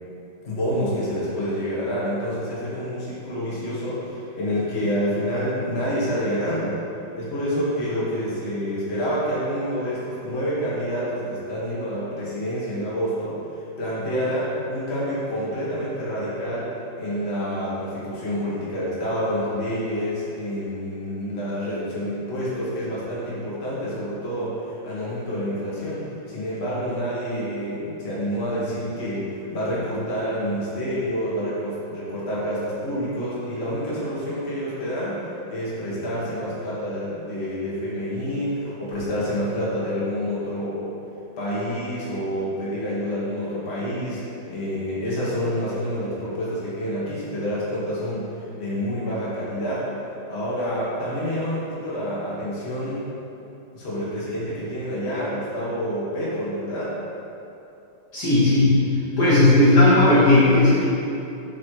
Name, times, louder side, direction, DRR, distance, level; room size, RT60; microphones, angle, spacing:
voice 1, 0.4-6.8 7.1-16.7 16.9-26.0 26.3-35.2 35.5-40.9 41.4-49.8 50.3-53.0 53.7-56.9, equal, 35° left, -8 dB, 1.5 m, -28 dB
voice 2, 58.1-58.7 59.2-60.8, left 2 dB, 60° left, -9 dB, 1.6 m, -15 dB
7.5 x 3.2 x 4.6 m, 2.8 s
omnidirectional pair, 2.1 m